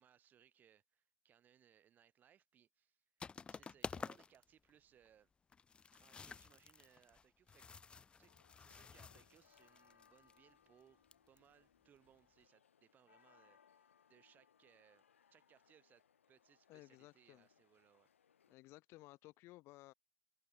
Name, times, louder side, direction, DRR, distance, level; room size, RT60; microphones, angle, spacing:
voice 1, 0.0-3.0 3.5-5.3 5.9-7.6 8.2-8.3 8.6-15.0 15.3-18.1, right 9 dB, 25° right, 6.7 m, -69 dB
sound 1, 3.2-4.4 4.7-4.8 5.1-5.2 5.5-10.4 11.1-11.4, left 5 dB, 15° left, 0.8 m, -51 dB
sound 2, 8.3-18.5, left 8 dB, 70° left, 3.1 m, -72 dB
voice 2, 16.7-17.5 18.5-19.9, left 19 dB, 35° left, 2.9 m, -58 dB
figure-of-eight pair, 105°, 7 cm